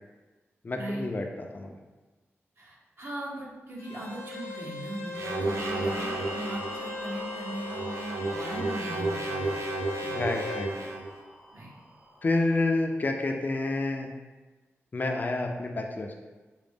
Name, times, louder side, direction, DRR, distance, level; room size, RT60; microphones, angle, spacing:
voice 1, 0.6-1.8 10.1-10.9 12.2-14.1 14.9-16.1, left 2 dB, 40° left, 3 dB, 0.4 m, -29 dB
voice 2, 2.6-9.6 10.0-10.2 11.5-11.7, right 1 dB, 55° right, -3 dB, 0.8 m, -38 dB
Bowed string instrument, 3.8-10.7, left 4 dB, 75° left, 0.8 m, -39 dB
sound 1, 5.1-6.7 7.5-11.1, right 2 dB, 85° right, 0.4 m, -32 dB
sound 2, 5.6-12.8, right 1 dB, 20° right, 0.7 m, -43 dB
4.8 x 2.0 x 3.5 m, 1.2 s
wide cardioid pair, 105°, 5 cm